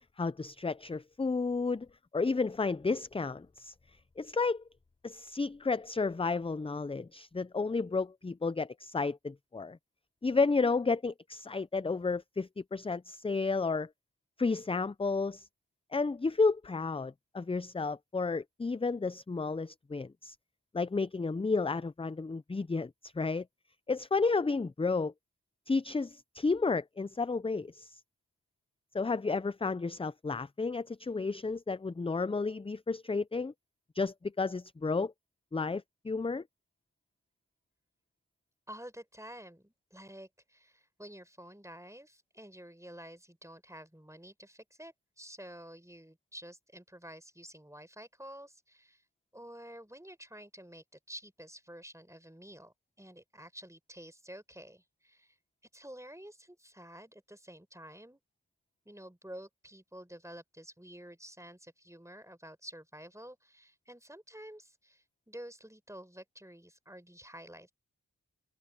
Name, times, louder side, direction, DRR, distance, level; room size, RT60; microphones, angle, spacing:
voice 1, 0.2-1.9 2.1-3.7 4.2-4.6 5.0-9.8 10.2-13.9 14.4-15.5 15.9-20.4 20.7-23.4 23.9-25.1 25.7-28.0 28.9-33.5 33.9-35.1 35.5-36.4, left 4 dB, 15° left, 0.4 m, -32 dB
voice 2, 38.7-49.0 49.3-55.4 55.7-58.2 58.8-67.7, equal, 10° right, 5.1 m, -50 dB
cardioid pair, 40°, 35 cm